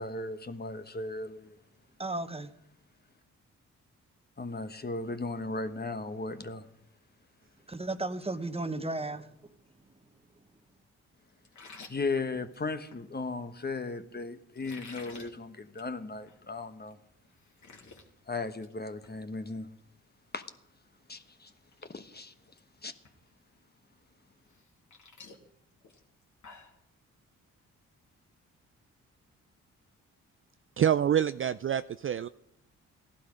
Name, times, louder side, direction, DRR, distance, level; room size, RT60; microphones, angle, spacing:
voice 1, 0.0-1.6 4.4-6.7 11.9-17.0 18.3-19.7 20.3-20.4 21.1-21.5 21.9-22.3 22.8-22.9, left 3 dB, 30° left, 1.2 m, -36 dB
voice 2, 2.0-2.5 7.7-9.3, right 2 dB, 15° right, 1.2 m, -34 dB
sound 1, 11.4-13.0 14.5-15.3 15.7-15.9 16.3-16.4 16.9-17.0 17.2-18.0 18.4-18.7 19.0-19.2 21.0-21.1 21.6-21.9 22.1-22.6 23.0-23.1 24.5-26.8, left 4 dB, 55° left, 2.7 m, -51 dB
voice 3, 30.8-32.3, right 9 dB, 40° right, 0.4 m, -26 dB
15.5 x 11.5 x 5.2 m
supercardioid pair, 45°, 35 cm